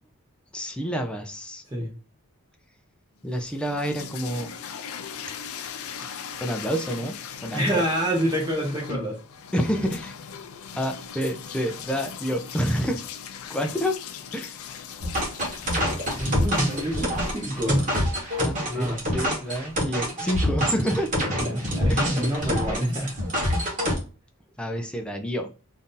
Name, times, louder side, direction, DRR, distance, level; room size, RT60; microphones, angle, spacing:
voice 1, 0.5-1.6 3.2-4.5 6.4-7.8 9.5-10.1 10.8-13.0 13.5-13.9 14.3-14.6 18.4-21.1 21.9-22.1 24.6-25.5, equal, 5° left, 4 dB, 0.4 m, -28 dB
sound 1, 3.3-19.3, left 7 dB, 70° left, 0.4 m, -40 dB
voice 2, 7.5-9.2 16.0-17.9 18.7-19.0 21.4-23.2, equal, 20° right, -2 dB, 0.7 m, -27 dB
sound 2, 15.0-24.0, equal, 35° right, 1.2 m, -26 dB
2.7 x 2.6 x 3.6 m, 0.36 s
head